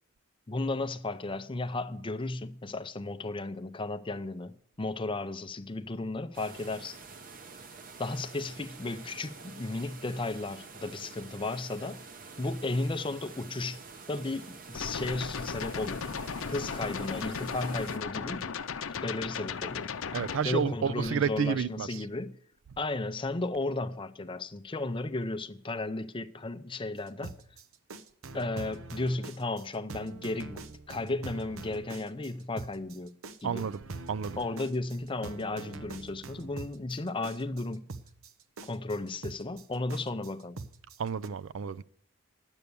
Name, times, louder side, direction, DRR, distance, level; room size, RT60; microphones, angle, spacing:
voice 1, 0.5-7.0 8.0-12.0 12.4-13.8 14.1-16.0 16.5-18.5 19.0-19.9 20.4-22.4 22.8-27.3 28.3-33.1 33.4-33.6 34.4-37.8 38.6-40.6, left 2 dB, 25° left, 0.5 m, -34 dB
sound 1, 6.3-18.0, right 4 dB, 40° right, 0.9 m, -48 dB
sound 2, 14.7-20.4, left 6 dB, 75° left, 0.6 m, -36 dB
voice 2, 20.1-21.9 33.4-33.8 34.1-34.4 41.0-41.8, right 6 dB, 65° right, 0.4 m, -30 dB
sound 3, 27.1-41.3, right 3 dB, 80° right, 0.8 m, -44 dB
10.5 x 8.2 x 6.8 m
head